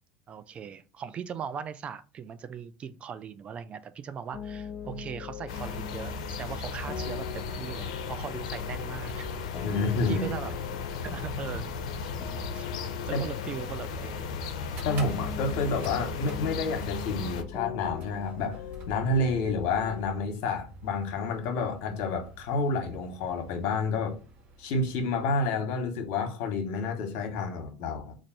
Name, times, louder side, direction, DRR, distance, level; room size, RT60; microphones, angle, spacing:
voice 1, 0.3-9.3 10.1-10.6 10.9-11.7 12.5-12.7 13.1-14.3, right 7 dB, 35° right, 0.3 m, -39 dB
sound 1, 4.3-20.1, left 8 dB, 45° left, 0.7 m, -41 dB
sound 2, 5.5-17.4, left 4 dB, 85° left, 0.5 m, -36 dB
sound 3, 8.5-17.2 17.9-25.4, right 2 dB, 50° right, 1.4 m, -51 dB
voice 2, 9.6-10.3 13.1-13.2 14.8-18.6 18.9-24.2 24.6-28.2, left 3 dB, 65° left, 1.0 m, -29 dB
3.2 x 2.5 x 4.0 m
hypercardioid pair, 95°, 3 cm